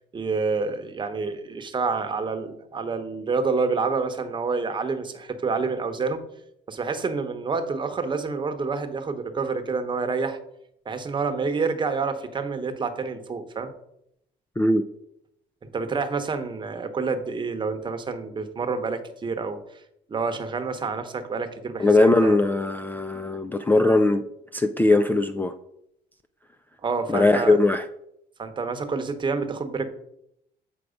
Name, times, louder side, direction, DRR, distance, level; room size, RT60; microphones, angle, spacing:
voice 1, 0.1-6.2 6.7-10.4 10.8-13.7 15.6-19.6 20.1-22.4 26.8-27.6 28.4-29.9, right 4 dB, 30° right, 7 dB, 1.0 m, -28 dB
voice 2, 21.8-24.2 24.5-25.5 27.1-27.9, left 2 dB, 10° left, 10 dB, 0.4 m, -20 dB
8.0 x 4.7 x 5.1 m, 0.78 s
cardioid pair, 110°, 17 cm